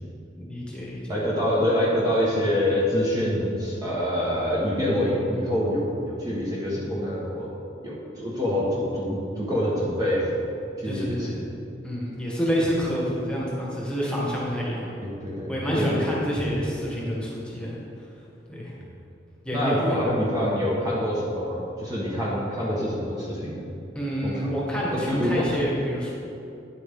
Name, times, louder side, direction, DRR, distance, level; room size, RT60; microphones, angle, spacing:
voice 1, 0.4-1.0 10.8-11.4 11.8-15.0 15.5-17.8 18.5-18.7 19.4-20.0 23.9-26.1, equal, 5° left, -5 dB, 1.6 m, -28 dB
voice 2, 1.1-7.5 7.8-10.3 10.8-11.5 15.0-16.2 19.5-23.6 24.2-24.5 25.1-25.4, equal, 20° right, -6 dB, 1.3 m, -26 dB
9.7 x 8.4 x 3.7 m, 2.7 s
head